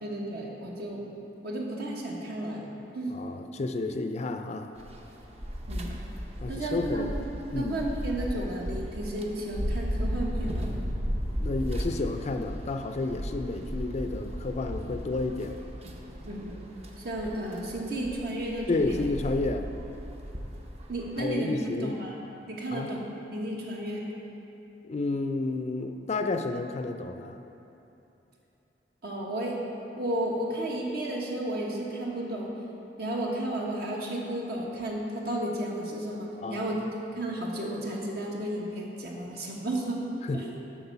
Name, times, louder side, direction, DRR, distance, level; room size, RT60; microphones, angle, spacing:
voice 1, 0.0-1.0 1.4-2.6 2.9-3.1 5.7-5.9 6.5-7.1 7.6-10.7 16.2-16.6 17.0-19.0 20.9-22.1 22.5-24.1 29.0-29.6 30.0-32.5 33.0-36.8 37.2-40.0 40.3-40.5, right 1 dB, 60° right, -2 dB, 1.3 m, -33 dB
voice 2, 3.1-4.7 6.4-7.2 7.5-7.8 11.3-15.6 18.7-19.7 21.2-22.1 22.7-23.0 24.8-27.4 36.4-36.8 40.3-40.5, left 3 dB, 40° left, 7 dB, 0.4 m, -31 dB
sound 1, 4.8-21.2, equal, 35° right, 0.7 m, -35 dB
7.9 x 6.2 x 5.7 m, 3.0 s
head